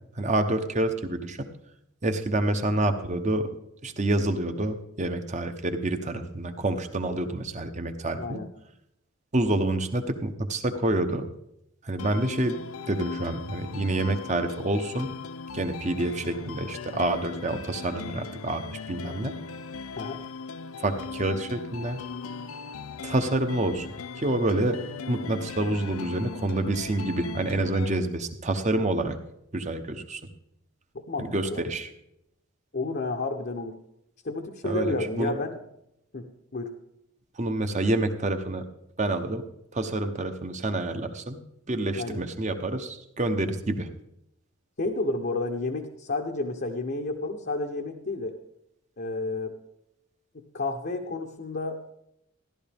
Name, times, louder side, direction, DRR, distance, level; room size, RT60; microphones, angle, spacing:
voice 1, 0.2-1.5 2.0-3.5 3.8-8.4 9.3-11.3 11.8-12.6 12.9-15.1 15.5-19.3 20.8-22.0 23.0-23.9 24.2-24.8 25.1-29.2 29.5-30.2 31.2-31.9 34.6-35.4 37.4-38.6 39.0-39.4 39.7-41.4 41.7-43.9, right 2 dB, 35° right, 7 dB, 0.9 m, -27 dB
voice 2, 8.2-8.5 20.0-20.2 30.9-31.6 32.7-33.7 34.2-35.6 36.1-36.7 42.0-42.2 44.8-48.3 49.0-49.5 50.3-51.9, left 2 dB, 50° left, 2 dB, 0.8 m, -31 dB
sound 1, 12.0-28.0, left 5 dB, 90° left, 0.5 m, -39 dB
14.5 x 11.5 x 3.5 m, 0.81 s
head